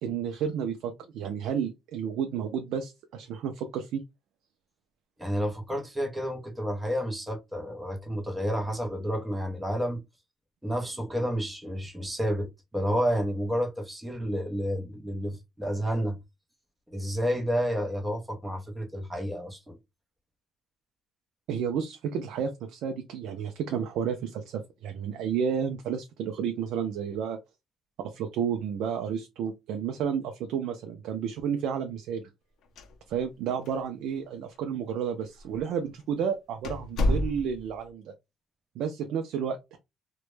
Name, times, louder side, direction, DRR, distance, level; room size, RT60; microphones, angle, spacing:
voice 1, 0.0-4.0 21.5-27.4 28.0-32.2 33.1-38.1 38.8-39.8, right 7 dB, 80° right, 0.3 m, -31 dB
voice 2, 5.2-10.0 10.6-16.2 16.9-19.8, equal, 10° right, 0.6 m, -30 dB
sound 1, 32.6-33.4 33.7-33.8 34.5-34.6 35.4-35.6 36.0-36.1 36.6-37.8, left 1 dB, 65° left, 0.4 m, -29 dB
2.1 x 2.1 x 3.0 m
cardioid pair, 145°, 0 cm